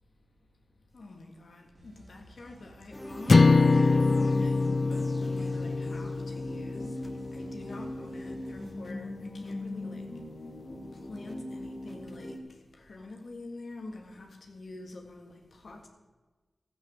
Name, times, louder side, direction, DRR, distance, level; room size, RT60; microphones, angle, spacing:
voice 1, 0.9-7.0 7.3-10.2 10.9-15.9, left 2 dB, 80° left, 1.8 m, -46 dB
Dance Loop, 1.7-8.7, right 1 dB, 60° right, 4.0 m, -54 dB
sound 1, 2.9-12.4, left 1 dB, 25° left, 1.5 m, -40 dB
sound 2, 3.3-7.6, left 3 dB, 60° left, 0.3 m, -24 dB
13.0 x 9.0 x 6.4 m
cardioid pair, 55°, 0 cm